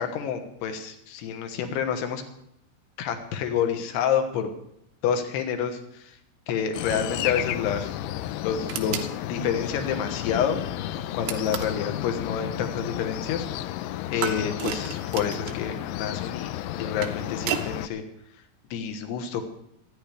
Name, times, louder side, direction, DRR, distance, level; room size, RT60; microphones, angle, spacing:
voice 1, 0.0-2.2 3.0-4.5 5.0-6.2 6.5-7.9 8.4-13.4 14.1-18.0 18.7-19.4, left 8 dB, 70° left, 6 dB, 3.1 m, -28 dB
sound 1, 6.7-17.9, left 13 dB, 90° left, 2.3 m, -32 dB
sound 2, 8.7-9.1 11.3-11.8 14.2-15.6 16.7-17.7, right 9 dB, 80° right, 3.5 m, -32 dB
27.0 x 10.0 x 3.3 m, 0.77 s
omnidirectional pair, 5.4 m